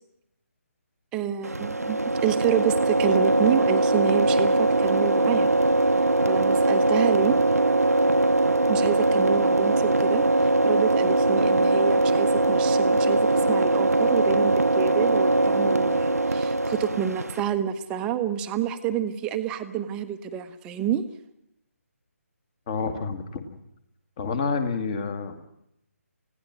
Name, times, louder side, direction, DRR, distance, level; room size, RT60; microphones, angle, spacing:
voice 1, 1.1-5.5 6.3-7.4 8.7-21.0, right 9 dB, 10° right, 9 dB, 1.0 m, -28 dB
sound 1, 1.4-17.4, right 2 dB, 80° right, 0.9 m, -21 dB
voice 2, 22.7-23.5 24.2-25.5, left 5 dB, 25° left, 8 dB, 2.1 m, -28 dB
30.0 x 17.0 x 6.2 m, 0.78 s
figure-of-eight pair, 150°, 8 cm